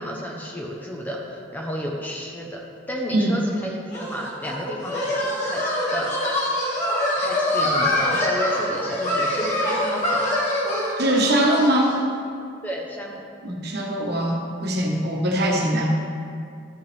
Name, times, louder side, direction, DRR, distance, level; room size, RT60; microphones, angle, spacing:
voice 1, 0.0-2.6 2.9-6.4 7.2-10.2 12.6-13.2, equal, 10° left, -1 dB, 0.8 m, -32 dB
sound 1, 3.9-12.0, left 1 dB, 35° left, 2.1 m, -24 dB
voice 2, 11.0-11.9 13.4-16.1, right 1 dB, 55° right, -1 dB, 1.2 m, -22 dB
13.0 x 5.6 x 3.4 m, 2.4 s
head